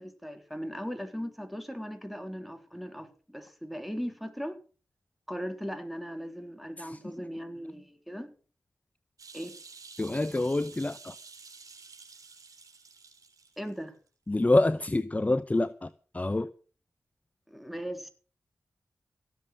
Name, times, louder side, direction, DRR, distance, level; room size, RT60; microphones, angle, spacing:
voice 1, 0.0-4.6 5.3-8.3 9.3-9.5 13.6-14.0 17.5-18.1, equal, ahead, 3.6 m, -38 dB
voice 2, 6.8-7.1 10.0-11.2 14.3-16.5, left 2 dB, 25° left, 0.8 m, -27 dB
sound 1, 9.2-13.7 14.1-14.2, right 4 dB, 75° right, 3.9 m, -50 dB
16.5 x 7.8 x 7.9 m
cardioid pair, 45°, 6 cm